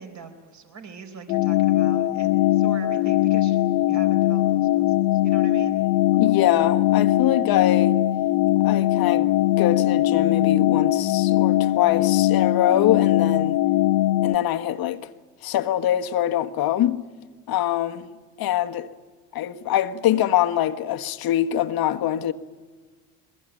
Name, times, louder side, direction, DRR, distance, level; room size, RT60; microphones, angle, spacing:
voice 1, 0.0-3.6 3.9-5.8, right 5 dB, 35° right, 4.3 m, -42 dB
sound 1, 1.3-14.4, left 15 dB, 70° left, 1.0 m, -20 dB
voice 2, 6.1-8.0 8.6-9.3 9.6-13.6 14.2-15.1 15.4-17.0 17.5-18.1 18.4-18.9 19.3-22.3, left 12 dB, 45° left, 1.5 m, -23 dB
23.0 x 21.5 x 9.2 m
hypercardioid pair, 90°, 50 cm